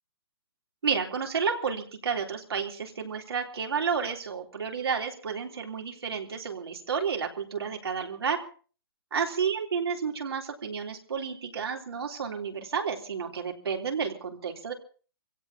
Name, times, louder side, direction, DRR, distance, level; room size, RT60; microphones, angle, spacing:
voice 1, 0.8-8.4 9.1-14.7, right 6 dB, 90° right, 1 dB, 3.6 m, -31 dB
25.0 x 16.5 x 2.9 m, 0.39 s
hypercardioid pair, 165°, 13 cm